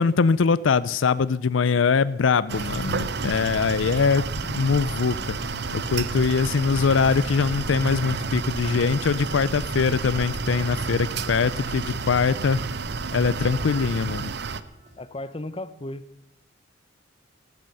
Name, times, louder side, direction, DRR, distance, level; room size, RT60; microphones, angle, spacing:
voice 1, 0.0-5.4 5.7-12.6 13.1-14.3, left 5 dB, 80° left, 18 dB, 0.5 m, -22 dB
sound 1, 2.5-14.2, equal, ahead, 1.9 m, -38 dB
sound 2, 2.5-14.6, right 5 dB, 60° right, 0.7 m, -31 dB
sound 3, 4.9-15.1, right 1 dB, 35° right, 2.8 m, -48 dB
voice 2, 15.0-16.0, left 1 dB, 30° left, 14 dB, 0.8 m, -34 dB
14.0 x 13.5 x 5.5 m, 0.79 s
head